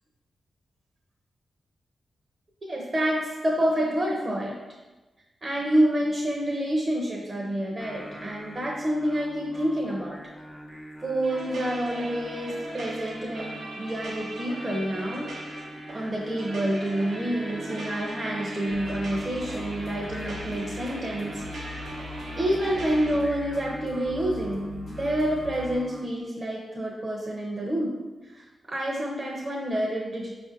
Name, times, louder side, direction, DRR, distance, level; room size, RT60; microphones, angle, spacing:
voice 1, 2.6-3.2 3.4-4.6 5.4-10.2 11.0-15.3 15.9-21.4 22.4-28.0 28.3-30.3, right 1 dB, 40° right, -3 dB, 0.6 m, -28 dB
Singing, 7.8-26.1, equal, 5° left, 0.5 m, -42 dB
sound 1, 11.2-23.2, right 2 dB, 90° right, 0.6 m, -40 dB
sound 2, 18.7-25.8, left 3 dB, 90° left, 0.7 m, -43 dB
4.6 x 2.5 x 2.6 m, 1.2 s
cardioid pair, 55°, 0 cm